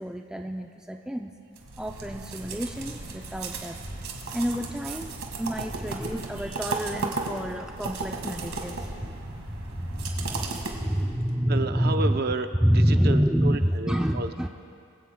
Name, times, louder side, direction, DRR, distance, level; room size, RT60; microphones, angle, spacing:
voice 1, 0.0-1.3 1.8-3.8 4.3-12.1 12.6-14.5, equal, 5° right, 2 dB, 0.3 m, -28 dB
sound 1, 1.6-11.3, right 3 dB, 75° right, 1.7 m, -35 dB
voice 2, 11.5-14.5, right 2 dB, 45° right, 7 dB, 0.6 m, -31 dB
23.0 x 16.0 x 2.2 m, 2.4 s
head